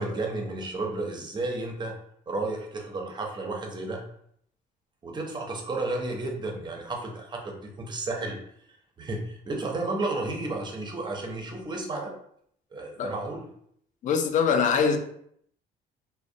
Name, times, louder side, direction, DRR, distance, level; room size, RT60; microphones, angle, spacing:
voice 1, 0.0-2.0 2.3-4.1 5.0-8.4 9.0-12.1 12.7-13.5, right 2 dB, 25° right, 2 dB, 0.5 m, -32 dB
voice 2, 14.0-15.0, left 6 dB, 50° left, 7 dB, 0.4 m, -23 dB
2.4 x 2.0 x 2.5 m, 0.68 s
cardioid pair, 110°, 17 cm